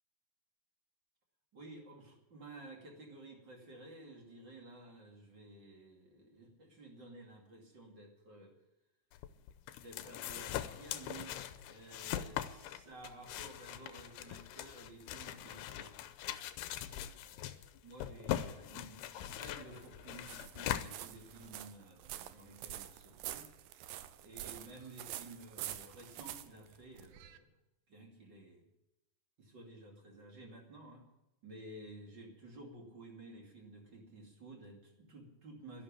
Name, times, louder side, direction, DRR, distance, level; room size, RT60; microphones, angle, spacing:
voice 1, 1.5-8.5 9.7-11.3 11.7-16.0 16.6-23.5 24.2-27.5 27.9-28.7 29.4-31.0 31.4-35.8, right 2 dB, 30° right, 1 dB, 2.6 m, -53 dB
sound 1, 9.1-21.6, left 12 dB, 85° left, 2.7 m, -42 dB
sound 2, 19.2-27.4, right 12 dB, 75° right, 2.1 m, -47 dB
12.5 x 11.5 x 8.9 m, 0.92 s
omnidirectional pair, 4.6 m